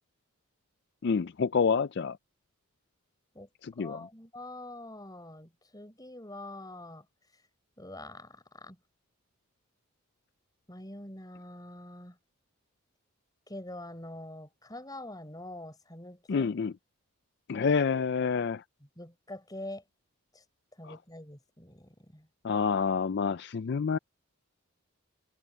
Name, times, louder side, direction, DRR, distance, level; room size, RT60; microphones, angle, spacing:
voice 1, 1.0-2.2 3.6-4.1 16.3-16.7 17.5-18.6 20.8-21.0 22.4-24.0, left 5 dB, 50° left, 0.4 m, -28 dB
voice 2, 3.8-7.1 7.8-8.8 10.7-12.2 13.5-16.5 19.0-19.8 20.3-20.4 20.8-22.3, left 1 dB, 15° left, 5.5 m, -45 dB
head